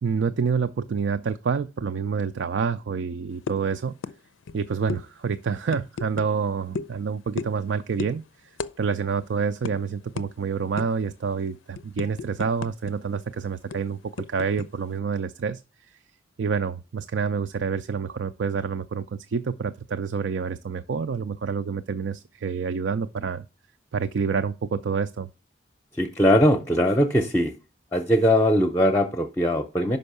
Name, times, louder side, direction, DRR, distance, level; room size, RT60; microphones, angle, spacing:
voice 1, 0.0-3.9 4.5-8.2 8.8-14.0 14.3-15.6 16.4-23.4 23.9-25.3, right 5 dB, 70° right, 0.4 m, -27 dB
sound 1, 3.5-3.7 4.0-4.2 4.4-4.6 4.9-5.0 5.7-6.3 6.7-6.9 7.4-7.6 8.0-8.2 8.6-8.7 9.0-9.2 9.6-9.7 10.2-10.3 10.8-11.0 11.4-12.9 13.2-13.3 13.7-14.7, left 4 dB, 90° left, 0.5 m, -33 dB
voice 2, 25.9-27.5 27.9-30.0, equal, 10° left, 0.6 m, -20 dB
5.5 x 5.4 x 6.6 m
head